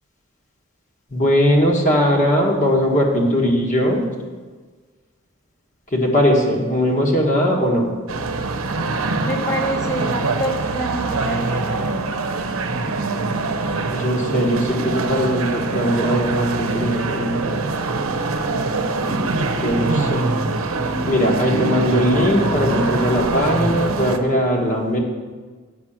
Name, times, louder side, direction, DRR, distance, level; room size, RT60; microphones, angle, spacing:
voice 1, 1.1-4.0 5.9-7.9 13.9-17.6 19.5-20.2 21.1-25.0, equal, 35° left, 0 dB, 1.5 m, -19 dB
sound 1, 8.1-24.2, right 3 dB, 75° right, 0.7 m, -23 dB
voice 2, 9.2-12.2, right 1 dB, 15° left, -1 dB, 1.1 m, -27 dB
8.3 x 6.0 x 7.3 m, 1.4 s
head